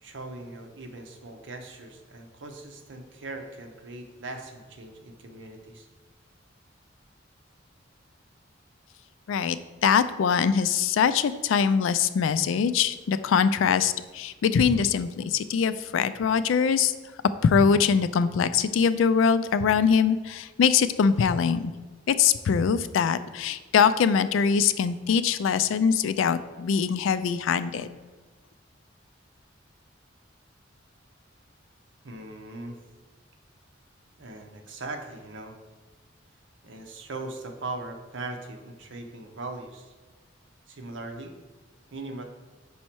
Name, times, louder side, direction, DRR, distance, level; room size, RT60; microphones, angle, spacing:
voice 1, 0.0-5.9 32.0-32.8 34.2-35.5 36.6-39.9 40.7-41.4 41.9-42.2, right 2 dB, 70° right, 4 dB, 0.8 m, -39 dB
voice 2, 9.8-16.9 17.4-21.7 22.1-27.9, left 6 dB, 90° left, 13 dB, 0.3 m, -23 dB
5.5 x 4.2 x 4.5 m, 1.3 s
head